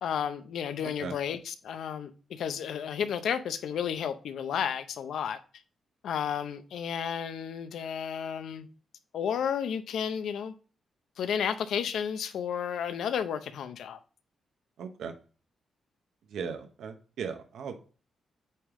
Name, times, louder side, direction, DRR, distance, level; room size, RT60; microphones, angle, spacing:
voice 1, 0.0-5.4 6.0-8.7 9.1-10.5 11.2-14.0, left 8 dB, 70° left, 0.5 m, -32 dB
voice 2, 0.8-1.1 14.8-15.1 16.3-17.8, right 6 dB, 70° right, 0.8 m, -38 dB
8.5 x 3.4 x 3.6 m
wide cardioid pair, 175°, 0 cm